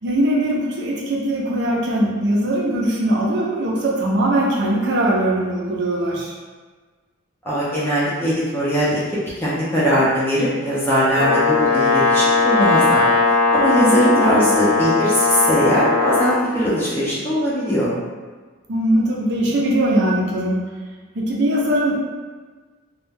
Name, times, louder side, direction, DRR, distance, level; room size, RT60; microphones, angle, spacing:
voice 1, 0.0-6.3 13.7-14.2 18.7-20.6 21.1-22.0, right 1 dB, 55° right, -3 dB, 0.5 m, -20 dB
voice 2, 7.4-9.0 9.4-17.9, equal, 10° left, -9 dB, 0.5 m, -20 dB
Brass instrument, 11.2-16.4, left 3 dB, 75° left, 0.8 m, -18 dB
2.3 x 2.1 x 3.3 m, 1.4 s
head